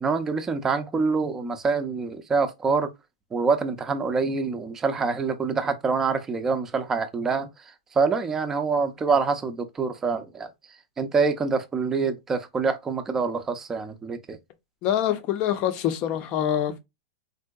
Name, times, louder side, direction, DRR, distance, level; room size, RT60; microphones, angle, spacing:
voice 1, 0.0-2.9 3.3-7.5 8.0-10.5 11.0-14.4, right 4 dB, 15° right, 0.5 m, -25 dB
voice 2, 14.8-16.8, left 10 dB, 40° left, 0.6 m, -25 dB
3.6 x 2.7 x 2.2 m
supercardioid pair, 140°, 3 cm